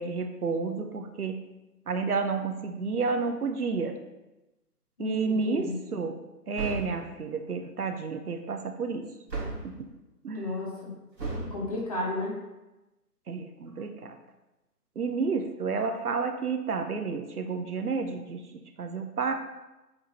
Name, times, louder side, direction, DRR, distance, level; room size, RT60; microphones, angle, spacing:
voice 1, 0.0-1.5 1.9-3.9 5.0-6.2 6.5-9.0 9.6-9.9 10.2-10.6 13.3-14.2 15.0-19.3, right 4 dB, 65° right, 7 dB, 0.8 m, -31 dB
voice 2, 5.0-5.8 10.3-10.9 11.4-12.4, left 2 dB, 20° left, -3 dB, 1.2 m, -33 dB
sound 1, 6.5-7.1 9.3-9.8 11.2-11.6, right 3 dB, 85° right, 2.0 m, -34 dB
7.9 x 3.7 x 4.2 m, 1.0 s
figure-of-eight pair, 150°, 48 cm